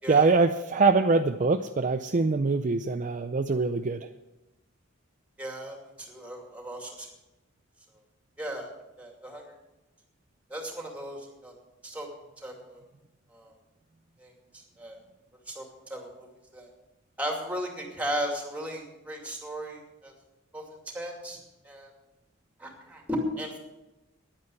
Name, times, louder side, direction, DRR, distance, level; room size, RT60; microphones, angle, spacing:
voice 1, 0.1-4.1, right 4 dB, 35° right, 7 dB, 0.5 m, -24 dB
voice 2, 5.4-7.1 8.4-8.7 9.0-9.4 10.5-11.5 11.8-12.1 12.4-12.8 13.3-13.5 14.2-15.0 15.5-16.1 16.5-16.7 17.2-20.1 20.5-20.6 20.9-21.4 21.6-21.9 22.6-23.6, equal, 5° right, 1 dB, 2.4 m, -36 dB
10.5 x 9.6 x 7.7 m, 1.0 s
head